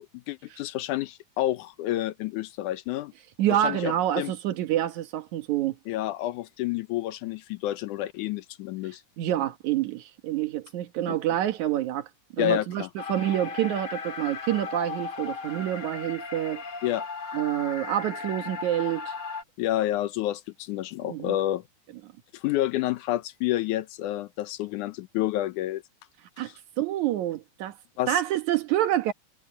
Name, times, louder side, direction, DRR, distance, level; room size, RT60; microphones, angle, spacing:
voice 1, 0.0-3.1 3.5-4.3 5.9-9.0 11.1-11.2 12.4-12.9 16.8-17.1 19.6-21.6 22.3-25.8 26.4-26.5 28.0-28.2, left 14 dB, 85° left, 2.3 m, -29 dB
voice 2, 3.4-5.8 9.2-12.1 12.3-12.8 13.1-16.6 17.3-19.1 21.0-21.4 26.4-26.5 26.8-27.7 28.1-29.1, right 12 dB, 70° right, 2.7 m, -27 dB
sound 1, 13.0-19.4, left 5 dB, 45° left, 2.7 m, -36 dB
omnidirectional pair, 3.5 m